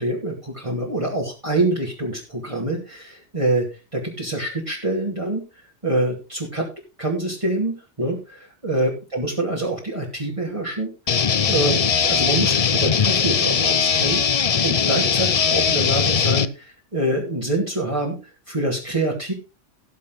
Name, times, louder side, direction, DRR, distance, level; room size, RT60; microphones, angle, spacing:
voice 1, 0.0-3.7 3.9-5.4 5.8-6.7 7.0-18.2 18.5-19.3, right 1 dB, 25° right, -4 dB, 2.7 m, -25 dB
sound 1, 11.1-16.5, left 6 dB, 40° left, 0.5 m, -20 dB
17.5 x 7.3 x 3.9 m, 0.31 s
omnidirectional pair, 1.2 m